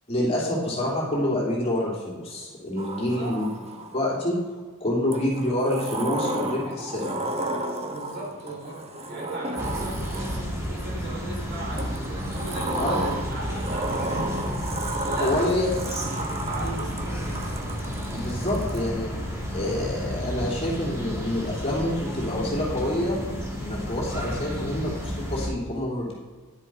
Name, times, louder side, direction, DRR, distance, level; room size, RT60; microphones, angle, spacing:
voice 1, 0.1-3.4 3.9-4.4 4.8-7.4 12.7-13.0 15.2-15.7 18.1-19.1 19.5-23.2 23.6-26.1, left 1 dB, 30° left, -5 dB, 2.9 m, -27 dB
Sliding door, 2.8-4.1 5.1-10.7 11.8-18.9, right 2 dB, 30° right, 1.0 m, -33 dB
voice 2, 2.9-3.4 7.8-11.9 12.3-15.5 16.0-17.6, right 1 dB, 50° right, -2 dB, 3.5 m, -38 dB
sound 1, 9.6-25.5, equal, 15° right, 2.4 m, -32 dB
10.5 x 7.5 x 4.9 m, 1.4 s
head